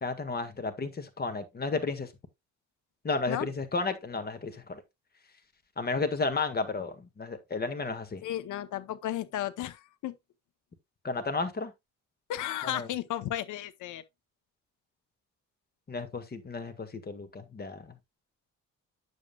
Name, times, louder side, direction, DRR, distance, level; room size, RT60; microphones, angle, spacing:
voice 1, 0.0-2.1 3.0-4.8 5.8-8.2 11.0-11.7 12.6-12.9 15.9-18.0, left 3 dB, 30° left, 1.8 m, -33 dB
voice 2, 8.2-10.2 12.3-14.0, left 12 dB, 80° left, 0.9 m, -34 dB
9.0 x 7.5 x 2.3 m
cardioid pair, 90°, 30 cm